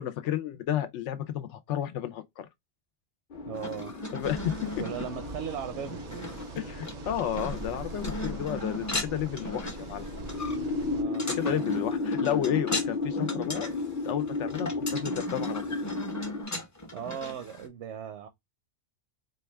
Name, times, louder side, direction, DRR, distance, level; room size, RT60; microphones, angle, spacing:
voice 1, 0.0-2.5 4.1-4.8 6.6-10.0 11.3-13.7 14.0-15.8, left 10 dB, 85° left, 0.9 m, -32 dB
sound 1, 3.3-16.4, left 3 dB, 50° left, 0.8 m, -34 dB
sound 2, 3.5-17.7, left 1 dB, 20° left, 0.6 m, -38 dB
voice 2, 3.5-3.9 4.8-6.4 10.9-11.7 16.9-18.3, right 8 dB, 80° right, 0.9 m, -38 dB
sound 3, 4.2-11.0, right 4 dB, 55° right, 0.5 m, -42 dB
4.1 x 2.3 x 3.3 m
omnidirectional pair, 1.2 m